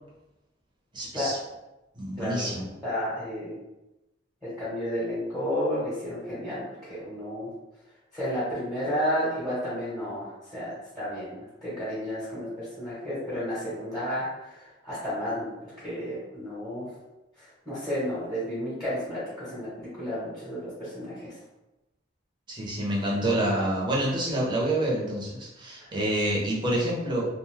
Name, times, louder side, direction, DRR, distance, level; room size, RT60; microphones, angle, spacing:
voice 1, 0.9-1.4 2.0-2.7 22.5-27.3, right 1 dB, 25° right, -4 dB, 0.7 m, -27 dB
voice 2, 2.2-2.5 2.8-3.6 4.4-7.5 8.1-16.9 17.4-21.3 25.8-25.9, equal, ahead, -10 dB, 1.0 m, -32 dB
2.5 x 2.3 x 3.3 m, 0.99 s
head